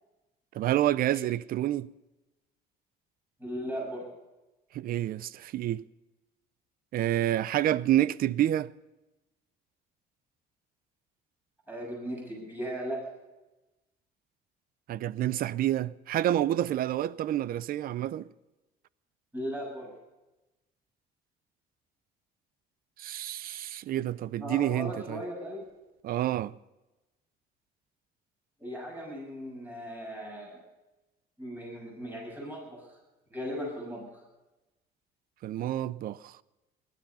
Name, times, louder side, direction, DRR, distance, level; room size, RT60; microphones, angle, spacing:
voice 1, 0.5-1.9 4.7-5.8 6.9-8.7 14.9-18.3 23.0-25.2 26.0-26.5 35.4-36.3, right 13 dB, 60° right, 0.6 m, -28 dB
voice 2, 3.4-4.1 11.7-13.1 19.3-19.9 24.4-25.6 28.6-30.6 31.4-32.9 33.3-34.2, equal, 10° right, 7.1 m, -37 dB
19.5 x 12.5 x 5.5 m
cardioid pair, 110°, 17 cm